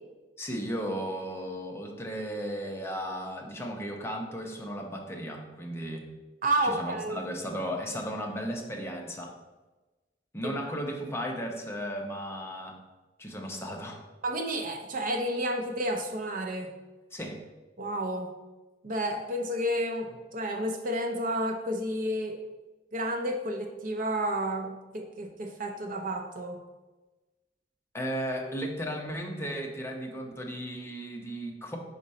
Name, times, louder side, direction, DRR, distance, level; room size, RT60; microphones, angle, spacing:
voice 1, 0.4-6.0 6.6-9.3 10.3-12.8 13.2-14.0 17.1-17.4 27.9-31.8, equal, 15° left, 1 dB, 0.7 m, -35 dB
voice 2, 6.4-7.2 10.4-10.8 14.2-16.7 17.8-18.3 18.8-22.4 22.9-26.6, right 1 dB, 50° right, 4 dB, 0.7 m, -31 dB
5.3 x 5.0 x 4.2 m, 1.2 s
head